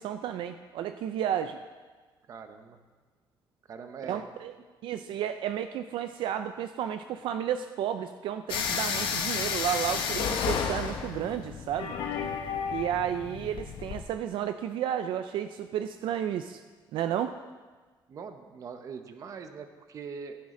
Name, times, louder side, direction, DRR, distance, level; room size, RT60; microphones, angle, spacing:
voice 1, 0.0-1.6 4.1-4.5 4.8-12.0 12.7-16.6 16.9-17.4, right 10 dB, 75° right, 9 dB, 0.4 m, -32 dB
voice 2, 2.3-2.8 3.7-4.3 18.1-20.4, right 6 dB, 40° right, 8 dB, 0.9 m, -42 dB
sound 1, 8.5-14.0, left 7 dB, 85° left, 1.1 m, -32 dB
15.5 x 10.5 x 3.8 m, 1.4 s
cardioid pair, 170°, 9 cm